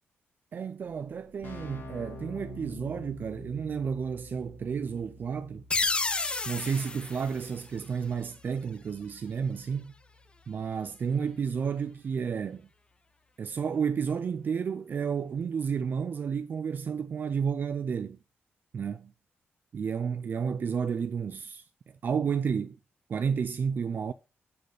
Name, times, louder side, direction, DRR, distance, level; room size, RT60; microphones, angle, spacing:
voice 1, 0.5-5.7 6.5-9.9 10.5-12.7 13.4-18.2 18.7-19.1 19.7-21.6 22.0-22.8 23.1-24.1, right 6 dB, 50° right, 0.4 m, -31 dB
Keyboard (musical), 0.8-0.9 1.1-11.7, left 2 dB, 60° left, 3.0 m, -49 dB
sound 1, 5.7-8.3, left 3 dB, 25° left, 0.5 m, -31 dB
8.6 x 4.2 x 4.8 m
cardioid pair, 110°, 4 cm